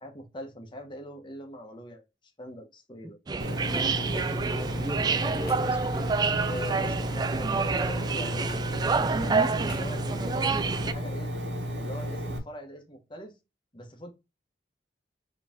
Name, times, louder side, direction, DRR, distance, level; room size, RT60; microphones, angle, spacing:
voice 1, 0.0-2.0 2.4-3.2 6.4-8.4 8.8-11.3 11.7-13.3 13.7-14.1, equal, 25° left, 1.1 m, -42 dB
sound 1, 3.3-10.9, right 4 dB, 25° right, 0.3 m, -28 dB
Engine, 3.4-12.4, equal, 75° right, 1.2 m, -33 dB
sound 2, 3.7-3.9 5.5-5.8 7.1-7.4 8.5-8.6 9.7-9.8, left 5 dB, 55° left, 1.1 m, -47 dB
voice 2, 3.7-6.9, equal, 10° right, 0.7 m, -39 dB
4.8 x 3.1 x 3.5 m
head